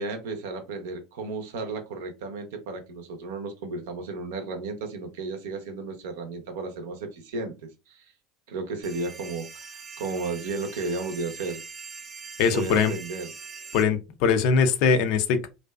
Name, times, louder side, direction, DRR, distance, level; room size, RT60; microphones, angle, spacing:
voice 1, 0.0-8.1 8.5-11.6 12.5-13.3, right 3 dB, 75° right, 0.6 m, -34 dB
sound 1, 8.8-13.8, right 5 dB, 25° right, 0.4 m, -42 dB
voice 2, 12.4-12.9 13.7-15.5, left 6 dB, 65° left, 0.4 m, -21 dB
2.5 x 2.2 x 2.2 m
hypercardioid pair, 75°, 0 cm